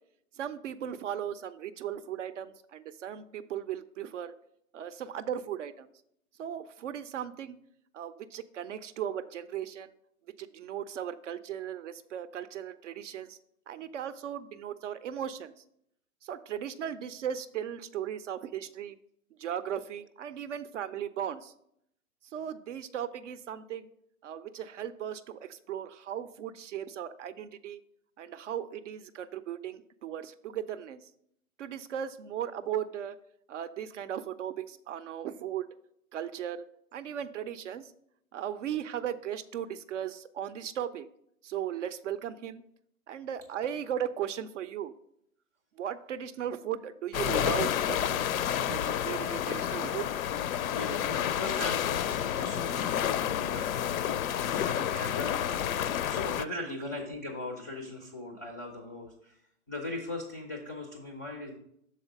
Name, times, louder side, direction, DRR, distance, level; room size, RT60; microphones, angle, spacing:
voice 1, 0.4-4.3 4.7-5.9 6.4-7.6 7.9-9.9 10.4-13.4 13.7-15.6 16.2-19.0 19.4-21.5 22.3-23.9 24.2-27.8 28.2-31.0 31.6-33.2 33.5-35.7 36.1-36.7 36.9-37.9 38.3-41.1 41.4-42.6 43.1-44.9 45.8-48.3 48.7-50.1, right 9 dB, 55° right, 14 dB, 0.5 m, -37 dB
sound 1, 47.1-56.5, left 10 dB, 70° left, 0.5 m, -30 dB
voice 2, 50.7-59.4 59.7-61.6, left 2 dB, 15° left, 2 dB, 0.3 m, -39 dB
6.5 x 4.2 x 5.2 m, 0.74 s
hypercardioid pair, 130°, 44 cm